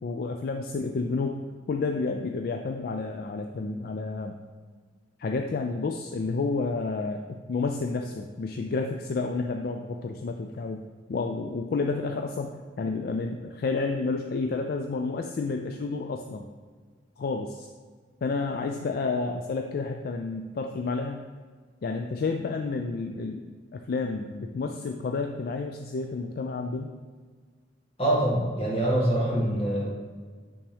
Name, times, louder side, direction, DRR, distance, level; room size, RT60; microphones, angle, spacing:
voice 1, 0.0-1.4 1.7-4.4 5.2-10.8 11.1-12.5 12.8-16.5 17.2-17.7 18.2-21.2 21.8-27.0, left 3 dB, 55° left, 4 dB, 0.3 m, -30 dB
voice 2, 28.0-29.9, right 1 dB, 30° left, -5 dB, 1.7 m, -24 dB
8.5 x 3.5 x 3.4 m, 1.6 s
head